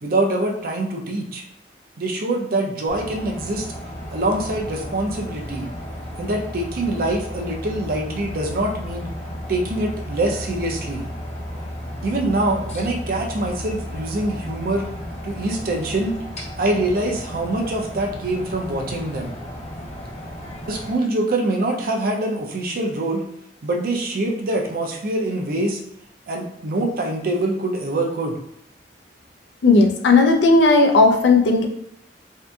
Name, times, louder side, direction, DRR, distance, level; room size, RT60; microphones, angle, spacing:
voice 1, 0.0-1.4 2.0-3.7 4.1-5.7 6.2-9.1 9.5-11.1 12.0-14.8 15.2-16.2 16.6-19.3 20.6-23.2 23.6-25.8 26.3-28.4, right 2 dB, 55° right, 1 dB, 0.5 m, -24 dB
sound 1, 2.9-21.0, equal, 40° left, 0.6 m, -34 dB
voice 2, 29.6-31.7, left 3 dB, 80° left, 3 dB, 0.4 m, -15 dB
2.7 x 2.5 x 2.3 m, 0.74 s
head